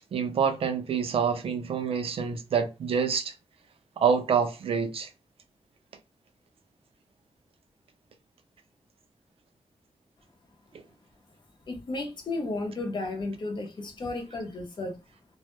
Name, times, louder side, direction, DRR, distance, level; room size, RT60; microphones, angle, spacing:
voice 1, 0.0-3.3 4.0-5.1, right 6 dB, 65° right, 0.4 m, -27 dB
voice 2, 11.7-15.0, left 2 dB, 50° left, 0.7 m, -33 dB
2.1 x 2.0 x 2.9 m
wide cardioid pair, 135°, 10 cm